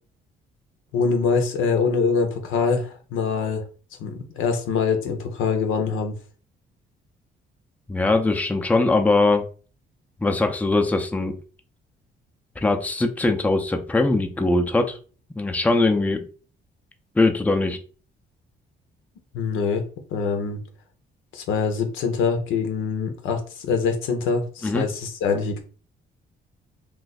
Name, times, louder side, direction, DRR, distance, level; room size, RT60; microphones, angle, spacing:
voice 1, 0.9-3.6 4.0-6.1 19.3-19.8 20.1-20.6 21.3-25.6, left 5 dB, 90° left, 5 dB, 0.8 m, -24 dB
voice 2, 7.9-9.4 10.2-11.4 12.6-15.0 15.4-16.3 17.2-17.8 24.6-24.9, left 2 dB, 5° left, 5 dB, 0.5 m, -21 dB
2.5 x 2.4 x 4.0 m, 0.39 s
cardioid pair, 90°, 20 cm